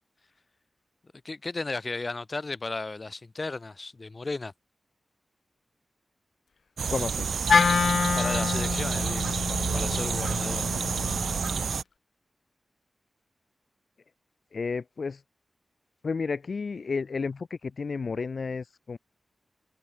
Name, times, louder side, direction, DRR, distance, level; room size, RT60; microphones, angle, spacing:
voice 1, 1.2-4.5 8.2-10.7, left 3 dB, 40° left, 5.3 m, -35 dB
sound 1, 6.8-11.8, right 6 dB, 85° right, 1.4 m, -29 dB
voice 2, 6.9-7.7 14.5-15.2 16.0-19.0, left 4 dB, 65° left, 2.8 m, -32 dB
Wind instrument woodwind instrument, 7.5-11.7, left 5 dB, 80° left, 1.9 m, -27 dB
wide cardioid pair, 70°, 0 cm